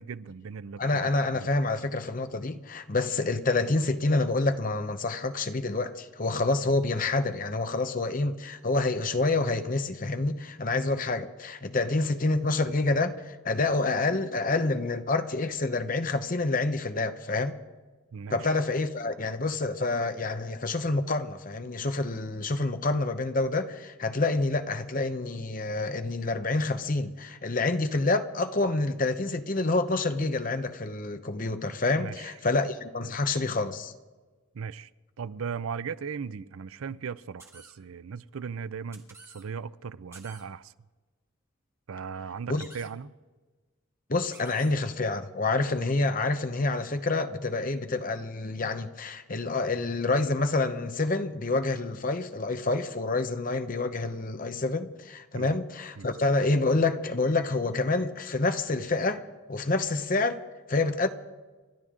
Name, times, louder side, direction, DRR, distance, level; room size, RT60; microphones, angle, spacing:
voice 1, 0.0-1.5 18.1-18.5 31.9-32.3 34.5-34.9 35.2-40.7 41.9-43.1 55.3-55.6 56.0-56.1, right 6 dB, 75° right, 0.5 m, -38 dB
voice 2, 0.8-17.5 18.3-33.9 42.5-42.6 44.1-59.2 59.5-60.4 60.7-61.1, left 3 dB, 40° left, 0.8 m, -27 dB
sound 1, 37.4-37.7 38.9-39.4 40.1-40.4 42.6-42.9 44.3-44.7, right 3 dB, 10° right, 1.4 m, -50 dB
29.5 x 12.0 x 3.7 m
head